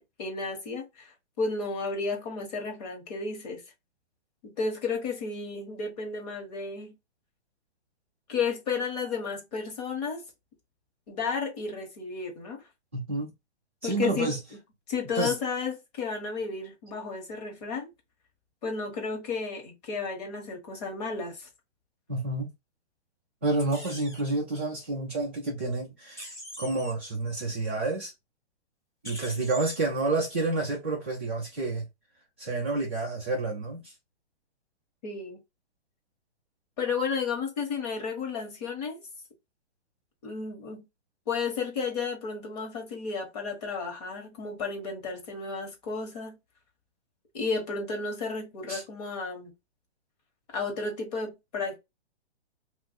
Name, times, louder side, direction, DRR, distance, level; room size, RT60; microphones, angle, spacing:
voice 1, 0.2-3.6 4.4-7.0 8.3-10.3 11.1-12.6 13.8-14.3 14.9-17.9 18.6-21.5 35.0-35.4 36.8-39.0 40.2-40.9 41.3-46.4 47.3-49.5 50.5-51.8, left 4 dB, 35° left, 1.3 m, -33 dB
voice 2, 12.9-13.3 13.8-14.4 15.1-15.3 22.1-22.5 23.4-26.3 26.6-28.1 29.0-31.9 32.4-33.9 48.7-48.8, right 2 dB, 10° right, 0.3 m, -29 dB
sound 1, 23.6-24.2 26.2-26.9 29.0-29.8, equal, 10° left, 0.7 m, -42 dB
2.6 x 2.4 x 4.0 m
hypercardioid pair, 160°, 33 cm